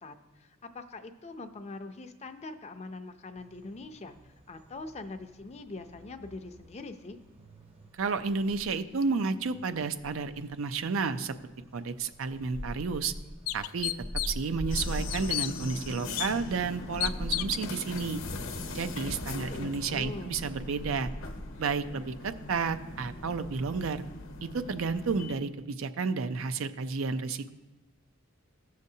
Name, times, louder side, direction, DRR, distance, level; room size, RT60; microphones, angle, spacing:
voice 1, 0.0-7.2 19.3-20.4, left 3 dB, 30° left, 8 dB, 0.5 m, -43 dB
sound 1, 3.4-23.1, equal, 30° right, 0.7 m, -44 dB
voice 2, 7.9-11.3 11.7-13.1 13.5-13.9 14.3-18.2 18.7-21.1 21.6-24.0 24.4-27.5, right 4 dB, 70° right, 10 dB, 0.5 m, -31 dB
sound 2, 12.4-12.5 13.0-13.1 13.5-14.5 14.8-15.5 16.2-16.3 17.0-17.7, left 16 dB, 90° left, 0.3 m, -31 dB
sound 3, 14.7-25.3, left 2 dB, 70° left, 0.8 m, -40 dB
15.0 x 6.5 x 2.8 m, 1.2 s
head